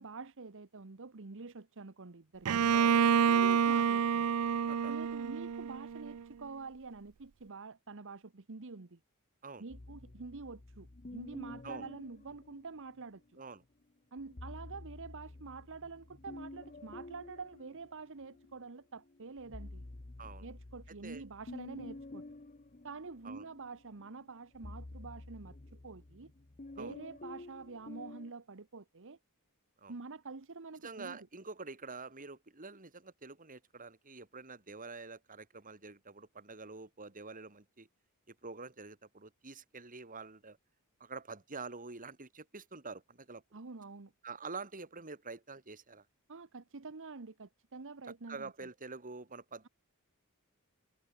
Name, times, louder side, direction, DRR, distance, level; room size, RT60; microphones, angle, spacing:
voice 1, 0.0-2.6 3.3-4.3 4.9-9.0 9.6-13.2 14.1-19.8 20.4-22.2 22.8-25.6 25.8-26.3 26.8-29.2 29.9-31.2 43.5-44.1 46.3-48.5, right 4 dB, 60° right, 1.0 m, -47 dB
Bowed string instrument, 2.5-6.2, right 7 dB, 85° right, 0.5 m, -28 dB
voice 2, 2.7-3.2 4.6-5.2 9.4-9.6 11.6-11.9 13.4-13.6 20.2-20.5 20.9-21.2 23.2-23.5 26.8-27.0 29.8-29.9 30.8-37.9 38.3-40.6 41.0-43.6 44.2-46.0 48.1-49.7, right 4 dB, 40° right, 2.8 m, -47 dB
sound 1, 9.7-13.2 14.2-18.6 19.0-28.3, left 2 dB, 35° left, 0.9 m, -50 dB
head